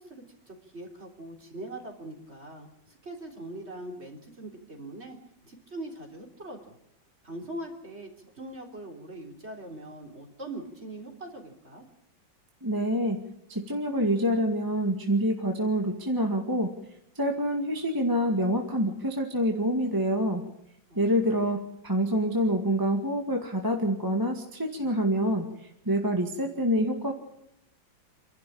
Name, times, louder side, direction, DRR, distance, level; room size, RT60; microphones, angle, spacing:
voice 1, 0.0-5.2 5.4-6.8 7.2-11.8 20.9-21.6, right 1 dB, 30° right, 1 dB, 3.8 m, -42 dB
voice 2, 12.6-13.2 13.5-16.7 17.1-20.4 20.9-25.5 25.8-27.1, equal, 10° right, 2 dB, 1.7 m, -26 dB
28.0 x 12.0 x 8.8 m, 0.79 s
omnidirectional pair, 2.2 m